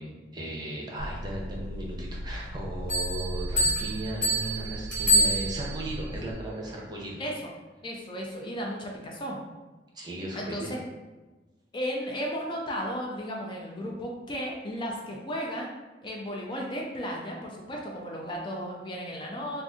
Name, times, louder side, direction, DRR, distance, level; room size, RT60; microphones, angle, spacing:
voice 1, 0.0-7.2 9.9-10.7, right 1 dB, 25° right, -3 dB, 0.6 m, -36 dB
sound 1, 1.0-6.3, equal, 60° right, 0.5 m, -37 dB
Bell, 2.9-6.0, equal, 10° left, 1.0 m, -27 dB
voice 2, 7.8-9.4 10.3-10.8 11.7-15.7 16.0-19.6, equal, 25° left, -1 dB, 0.4 m, -34 dB
2.5 x 2.5 x 3.6 m, 1.2 s
head